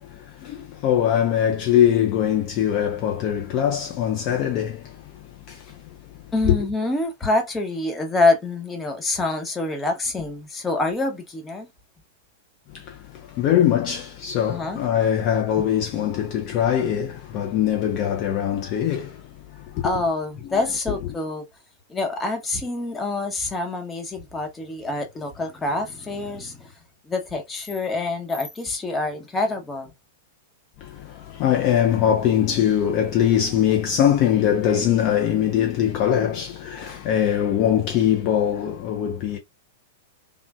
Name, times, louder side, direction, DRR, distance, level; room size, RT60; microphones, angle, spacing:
voice 1, 0.0-5.8 6.5-6.6 12.7-19.9 20.5-20.6 30.8-39.4, left 10 dB, 40° left, 0.6 m, -22 dB
voice 2, 6.3-11.7 14.5-14.8 15.6-15.7 19.8-21.4 21.9-26.7 27.0-29.9, left 2 dB, 15° left, 1.0 m, -26 dB
3.5 x 2.5 x 2.3 m
figure-of-eight pair, 100°, 0 cm